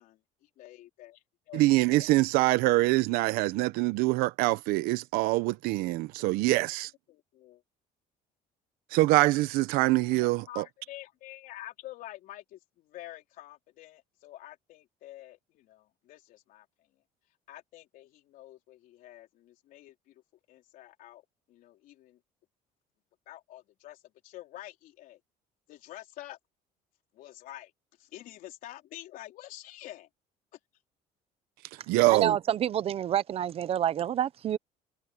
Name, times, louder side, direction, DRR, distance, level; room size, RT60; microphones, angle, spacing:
voice 1, 0.0-2.2 7.1-7.6 10.2-16.7 17.5-20.2 20.5-21.2 21.5-22.2 23.3-25.2 25.7-26.4 27.1-27.7 28.0-30.1, left 15 dB, 65° left, 3.9 m, -48 dB
voice 2, 1.5-6.9 8.9-10.6 31.9-32.4, right 20 dB, 85° right, 1.0 m, -24 dB
voice 3, 32.1-34.6, right 10 dB, 40° right, 0.8 m, -28 dB
cardioid pair, 140°, 15 cm